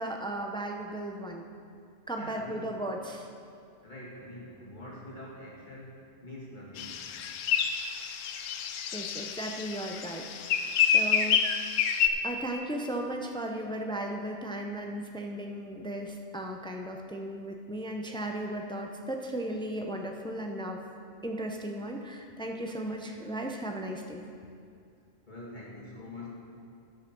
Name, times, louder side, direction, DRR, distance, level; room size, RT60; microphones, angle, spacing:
voice 1, 0.0-1.5 2.1-3.3 8.9-11.4 12.2-20.8 21.2-24.2, right 1 dB, 5° left, 2 dB, 0.3 m, -36 dB
voice 2, 2.2-2.7 3.8-7.0 25.3-26.3, left 1 dB, 35° left, -6 dB, 2.4 m, -45 dB
sound 1, 6.8-12.1, left 7 dB, 75° left, 1.0 m, -28 dB
12.0 x 5.6 x 6.1 m, 2.3 s
omnidirectional pair, 1.4 m